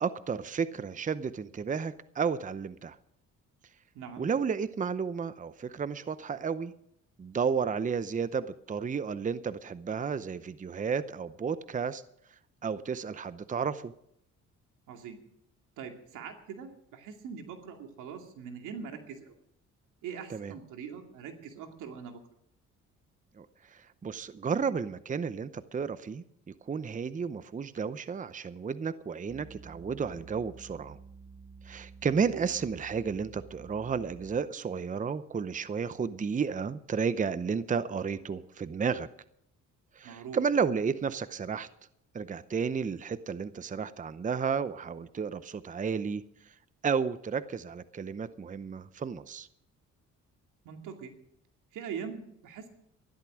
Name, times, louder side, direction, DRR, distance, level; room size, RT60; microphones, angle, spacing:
voice 1, 0.0-3.0 4.2-6.7 7.2-12.0 12.6-13.9 20.3-20.5 23.4-23.5 23.7-26.2 26.7-31.0 31.6-39.1 40.0-41.7 42.1-46.2 46.8-49.5, right 6 dB, 25° right, 14 dB, 0.7 m, -32 dB
voice 2, 3.9-4.3 14.9-15.2 15.8-19.4 20.0-22.2 32.3-32.5 40.0-40.4 50.6-51.1 51.7-52.7, right 7 dB, 90° right, 4 dB, 2.4 m, -42 dB
sound 1, 29.3-34.6, right 5 dB, 45° right, 1.6 m, -51 dB
14.5 x 12.0 x 6.3 m, 0.74 s
cardioid pair, 90°, 30 cm